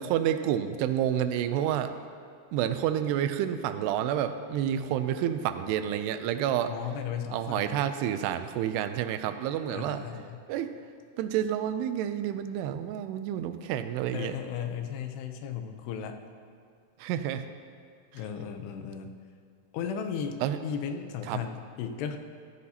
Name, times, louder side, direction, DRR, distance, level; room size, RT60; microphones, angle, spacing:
voice 1, 0.0-1.9 2.5-6.7 7.3-10.0 10.5-10.7 11.2-14.4 17.0-17.5 20.4-20.6 21.3-21.4, right 10 dB, 90° right, 10 dB, 2.7 m, -29 dB
voice 2, 6.7-7.8 9.7-10.4 14.1-16.2 18.1-19.2 19.7-22.2, left 7 dB, 90° left, 6 dB, 2.9 m, -35 dB
15.5 x 13.5 x 2.8 m, 2.2 s
omnidirectional pair, 4.6 m